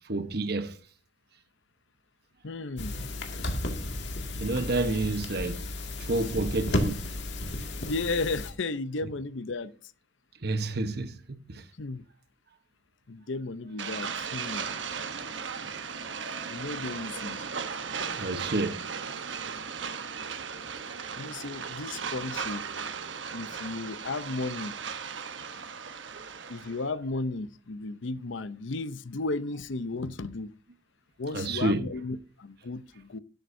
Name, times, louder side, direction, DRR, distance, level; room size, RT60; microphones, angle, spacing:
voice 1, 0.0-0.8 4.4-5.6 6.0-7.0 10.4-11.6 18.1-18.8 26.1-26.5 31.3-31.9, right 2 dB, 55° right, 1.1 m, -30 dB
voice 2, 2.4-2.9 7.8-9.7 11.8-12.0 13.1-14.7 16.5-17.5 21.1-22.6 23.3-24.8 26.5-30.5 31.2-33.2, left 3 dB, 85° left, 0.8 m, -34 dB
sound 1, 2.8-8.5, left 1 dB, 65° left, 2.1 m, -33 dB
sound 2, 13.8-26.8, right 6 dB, 80° right, 1.1 m, -36 dB
12.5 x 10.5 x 2.7 m
head